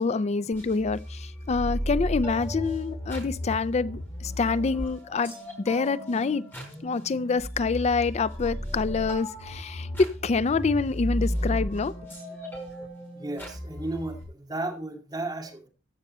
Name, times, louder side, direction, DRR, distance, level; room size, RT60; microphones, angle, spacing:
voice 1, 0.0-5.3 5.7-6.4 6.8-11.9, left 4 dB, 35° left, 0.4 m, -26 dB
sound 1, 0.5-14.2, equal, 10° left, 5.2 m, -34 dB
voice 2, 13.1-15.7, right 2 dB, 20° right, 2.3 m, -34 dB
14.5 x 6.6 x 4.2 m
head